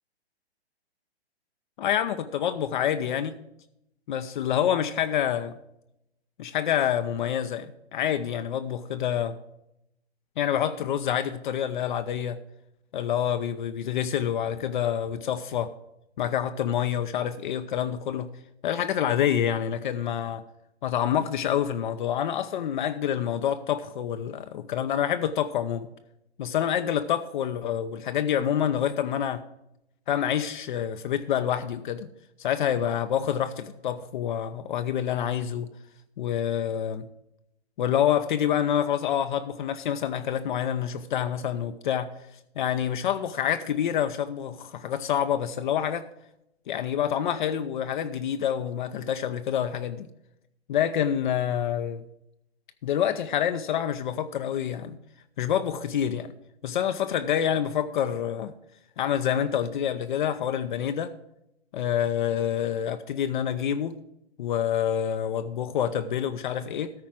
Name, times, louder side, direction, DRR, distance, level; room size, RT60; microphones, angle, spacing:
voice 1, 1.8-3.3 4.1-5.5 6.4-9.4 10.4-12.4 12.9-15.7 16.2-18.3 18.6-20.4 20.8-25.9 26.4-29.4 30.1-32.1 32.4-35.7 36.2-37.1 37.8-42.1 42.6-46.1 46.7-50.1 50.7-52.0 52.8-55.0 55.4-56.3 56.6-58.5 59.0-61.1 61.7-64.0 64.4-66.9, left 9 dB, 50° left, 0.7 m, -27 dB
13.5 x 4.6 x 7.5 m
hypercardioid pair, 135°, 32 cm